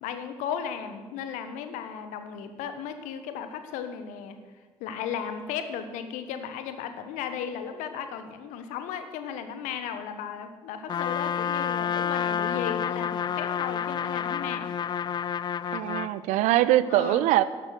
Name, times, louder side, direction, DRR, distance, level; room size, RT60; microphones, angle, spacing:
voice 1, 0.0-4.4 4.8-14.7 16.9-17.2, left 8 dB, 65° left, 9 dB, 1.2 m, -35 dB
Trumpet, 10.9-16.2, left 8 dB, 30° left, 0.3 m, -29 dB
voice 2, 15.7-17.4, right 14 dB, 60° right, 16 dB, 0.6 m, -22 dB
12.0 x 11.0 x 6.5 m, 1.4 s
figure-of-eight pair, 45°, 14 cm